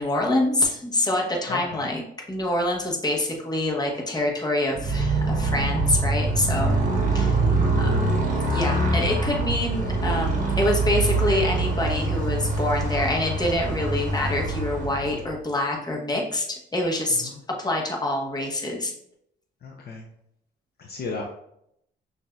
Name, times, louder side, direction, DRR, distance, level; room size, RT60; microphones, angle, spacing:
voice 1, 0.0-2.0 2.3-6.8 7.1-7.4 7.8-8.1 8.5-18.9, left 1 dB, 20° left, -1 dB, 1.1 m, -26 dB
voice 2, 1.5-1.9 7.6-7.9 17.2-17.4 19.6-20.1 20.8-21.3, left 3 dB, 50° left, 1 dB, 0.5 m, -35 dB
Motorcycle, 4.7-15.4, right 2 dB, 40° right, 1.2 m, -24 dB
6.0 x 2.6 x 2.3 m, 0.75 s
cardioid pair, 90°, 20 cm